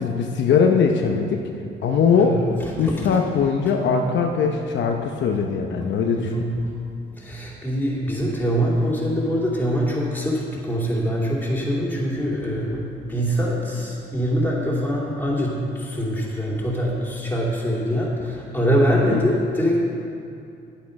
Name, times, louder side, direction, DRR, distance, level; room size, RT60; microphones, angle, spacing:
voice 1, 0.0-1.4 1.8-2.4 2.8-6.3 19.1-19.3, left 6 dB, 70° left, 3 dB, 0.8 m, -20 dB
voice 2, 2.2-3.2 6.2-6.5 7.2-19.8, equal, 10° left, -4 dB, 2.8 m, -24 dB
10.0 x 8.7 x 5.3 m, 2.6 s
cardioid pair, 90°, 20 cm